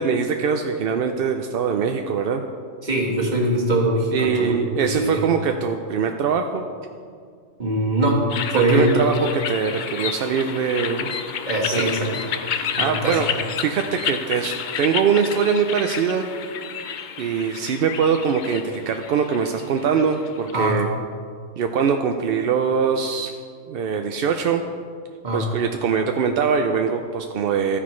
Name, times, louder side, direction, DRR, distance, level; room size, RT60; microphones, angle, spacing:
voice 1, 0.0-2.4 4.1-6.7 8.5-11.1 11.7-11.8 12.5-13.3 13.6-16.2 17.2-20.9 21.6-23.3 23.7-24.6 25.3-27.8, right 6 dB, 65° right, 5 dB, 0.6 m, -22 dB
voice 2, 2.8-5.2 7.6-8.9 11.4-12.1 12.8-13.2 20.5-20.8 25.2-25.5, right 1 dB, 35° right, -1 dB, 1.5 m, -22 dB
sound 1, 8.3-20.5, left 7 dB, 70° left, 0.4 m, -30 dB
13.0 x 9.7 x 3.2 m, 2.1 s
omnidirectional pair, 1.4 m